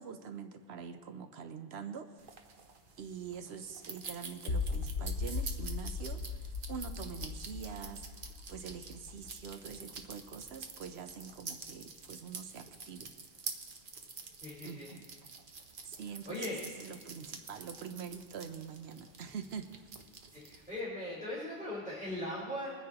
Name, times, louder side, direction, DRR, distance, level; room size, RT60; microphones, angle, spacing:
voice 1, 0.0-2.3 3.0-13.1 14.6-15.1 15.8-19.9, right 6 dB, 85° right, 8 dB, 0.9 m, -45 dB
sound 1, 2.2-20.8, right 4 dB, 60° right, 1.0 m, -48 dB
sound 2, 4.5-10.6, left 4 dB, 90° left, 1.0 m, -38 dB
voice 2, 14.4-14.9 16.3-16.6 20.3-22.7, left 1 dB, 5° right, -9 dB, 4.5 m, -39 dB
21.5 x 9.7 x 2.9 m, 1.5 s
omnidirectional pair, 1.0 m